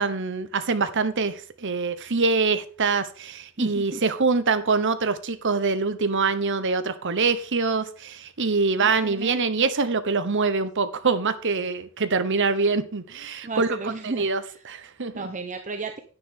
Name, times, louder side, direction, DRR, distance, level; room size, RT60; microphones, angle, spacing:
voice 1, 0.0-13.8 14.2-15.3, right 4 dB, 55° right, 1.1 m, -24 dB
voice 2, 3.6-4.0 8.8-9.4 13.4-14.6 15.1-16.0, right 3 dB, 35° right, 0.9 m, -33 dB
10.0 x 9.8 x 3.8 m
head